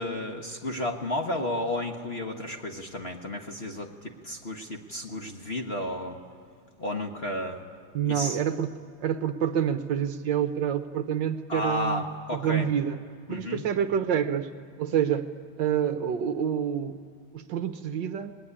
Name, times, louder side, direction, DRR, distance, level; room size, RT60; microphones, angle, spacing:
voice 1, 0.0-6.2 6.8-7.6 8.0-8.4 11.5-12.7 13.3-13.6, left 1 dB, 35° left, 3 dB, 1.2 m, -32 dB
voice 2, 7.9-12.0 12.3-13.0 13.3-14.5 14.8-15.3 15.6-17.0 17.3-18.3, right 8 dB, 65° right, 10 dB, 1.3 m, -27 dB
26.0 x 20.0 x 10.0 m, 2.3 s
omnidirectional pair, 2.3 m